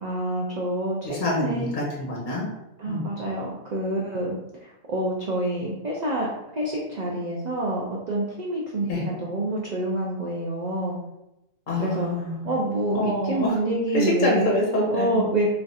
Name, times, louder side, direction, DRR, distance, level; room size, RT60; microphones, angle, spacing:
voice 1, 0.0-1.7 2.8-4.3 4.9-6.3 6.5-11.0 11.8-12.1 12.4-14.5 14.9-15.6, right 1 dB, 50° right, -3 dB, 0.5 m, -27 dB
voice 2, 1.0-2.5 2.9-3.0 8.9-9.0 11.7-12.5 12.9-13.6 13.9-15.2, left 1 dB, 40° left, -3 dB, 0.9 m, -26 dB
3.2 x 2.4 x 4.0 m, 0.90 s
omnidirectional pair, 1.4 m